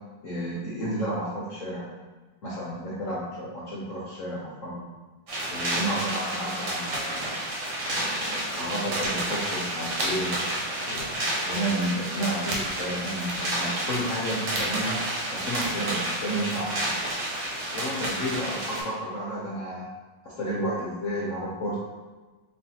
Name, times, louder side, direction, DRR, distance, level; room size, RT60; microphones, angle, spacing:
voice 1, 0.2-1.9 2.4-4.9 5.5-7.4 7.8-10.4 10.9-15.1 15.3-17.0 17.7-19.9 20.2-21.8, right 1 dB, 70° left, -7 dB, 0.7 m, -32 dB
sound 1, 5.3-18.8, right 1 dB, 60° right, 1.6 m, -30 dB
sound 2, 9.0-9.2 10.0-10.2 11.0-11.2 11.8-11.9 12.5-12.8 13.3-13.5 13.9-14.0 14.5-14.8 15.6-15.7, right 2 dB, 90° right, 1.7 m, -35 dB
4.4 x 3.2 x 2.8 m, 1.3 s
omnidirectional pair, 2.3 m